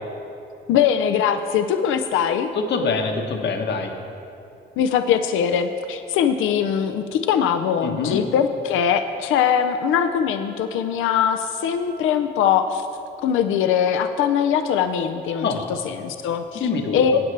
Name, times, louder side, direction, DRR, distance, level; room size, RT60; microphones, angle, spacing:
voice 1, 0.7-2.5 4.8-12.9 13.2-15.5 15.8-17.2, left 8 dB, 85° left, 8 dB, 0.5 m, -21 dB
voice 2, 2.5-3.9 7.8-8.2 15.4-15.7 16.5-17.0, left 4 dB, 60° left, 4 dB, 1.1 m, -24 dB
14.5 x 8.6 x 3.3 m, 2.8 s
cardioid pair, 90°, 20 cm